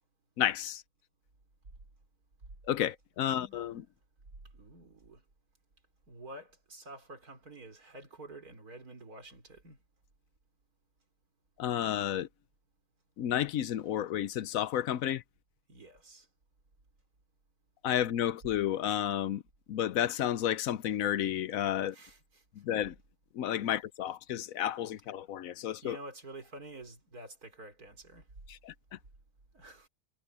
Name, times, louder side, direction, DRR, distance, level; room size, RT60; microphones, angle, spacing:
voice 1, 0.4-0.8 2.7-3.8 11.6-12.3 13.2-15.2 17.8-19.4 19.7-22.0 22.5-22.9 23.3-26.0 28.5-29.0, left 11 dB, 65° left, 1.0 m, -31 dB
voice 2, 3.2-3.6 4.5-5.2 6.1-9.8 15.7-16.3 21.9-22.4 25.8-28.3 29.5-29.9, right 2 dB, 65° right, 4.9 m, -49 dB
omnidirectional pair, 1.7 m